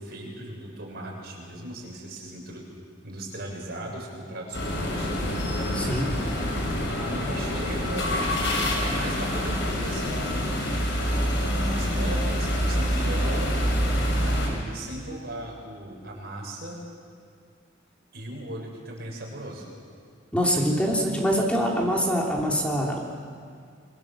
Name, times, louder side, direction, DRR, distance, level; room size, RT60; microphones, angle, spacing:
voice 1, 0.0-2.6 3.0-5.1 6.9-8.2 8.8-10.5 10.8-13.6 14.1-16.8 18.1-19.7, right 1 dB, 60° right, -1 dB, 7.0 m, -37 dB
sound 1, 4.5-14.5, equal, 70° left, 6.4 m, -26 dB
voice 2, 5.7-6.1 20.3-23.0, equal, 5° left, -2 dB, 3.1 m, -24 dB
28.0 x 23.5 x 7.6 m, 2.2 s
head